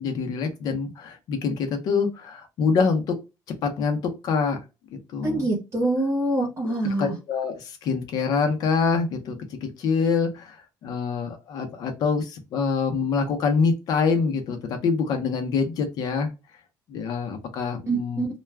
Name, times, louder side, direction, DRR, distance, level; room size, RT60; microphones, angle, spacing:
voice 1, 0.0-3.2 3.6-4.6 5.1-5.5 6.6-9.4 9.6-16.3 16.9-18.2, left 5 dB, 55° left, 5 dB, 0.7 m, -25 dB
voice 2, 5.2-7.2 17.9-18.3, right 2 dB, 30° right, -1 dB, 1.0 m, -25 dB
2.3 x 2.3 x 3.2 m, 0.26 s
cardioid pair, 160°, 8 cm